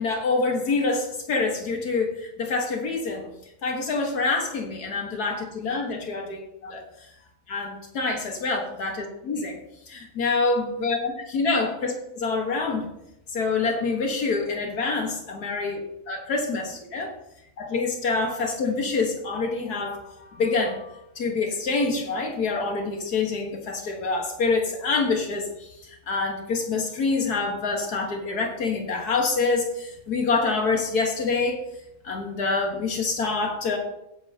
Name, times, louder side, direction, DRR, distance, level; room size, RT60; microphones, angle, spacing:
voice 1, 0.0-3.3 3.6-6.8 7.5-9.6 9.9-12.9 13.3-15.8 16.1-17.1 17.6-20.9 21.2-25.5 26.1-31.6 32.0-33.8, left 3 dB, 90° left, 2 dB, 2.1 m, -26 dB
16.0 x 8.7 x 2.9 m, 0.84 s
omnidirectional pair, 1.6 m